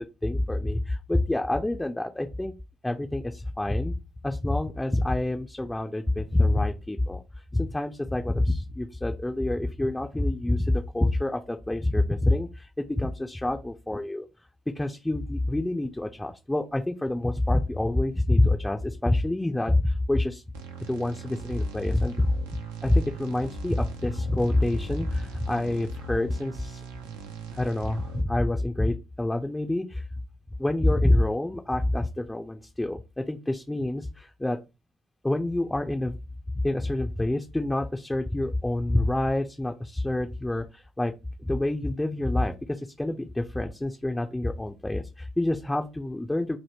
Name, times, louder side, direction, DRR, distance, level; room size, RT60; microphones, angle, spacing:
voice 1, 0.2-2.5 2.8-3.9 4.2-7.2 7.5-14.2 14.8-20.4 20.9-22.3 22.8-26.8 27.5-30.1 30.6-34.6 35.2-36.2 36.6-41.1 41.4-46.6, left 1 dB, 10° left, 4 dB, 0.4 m, -27 dB
sound 1, 20.5-28.2, right 5 dB, 80° right, 0.4 m, -41 dB
2.9 x 2.1 x 3.4 m, 0.27 s
hypercardioid pair, 50°, 0 cm